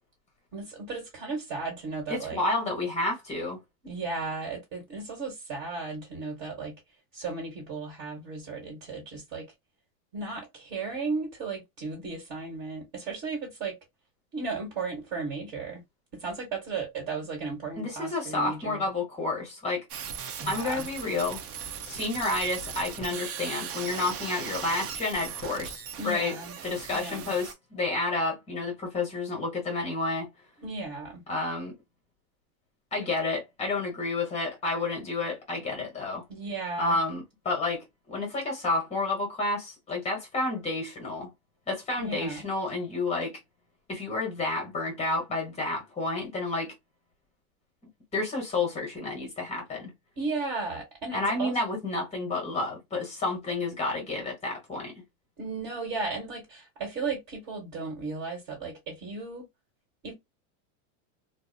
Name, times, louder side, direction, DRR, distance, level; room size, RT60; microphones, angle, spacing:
voice 1, 0.5-2.4 3.8-6.7 7.1-9.5 10.1-13.8 14.3-15.8 16.1-18.9 20.4-20.9 26.0-26.5 26.9-27.3 30.6-31.2 36.3-37.0 42.0-42.5 50.2-51.6 55.4-59.4 60.0-60.1, right 4 dB, 40° right, 1.2 m, -35 dB
voice 2, 2.1-3.6 17.8-19.8 20.5-21.4 21.8-26.4 26.6-30.3 31.3-31.8 32.9-36.2 36.8-41.3 41.7-43.4 43.9-46.7 48.1-49.9 51.1-54.9, left 2 dB, 15° left, 0.9 m, -30 dB
sound 1, 19.9-27.5, right 7 dB, 80° right, 0.7 m, -38 dB
2.5 x 2.0 x 2.6 m
supercardioid pair, 155°, 44 cm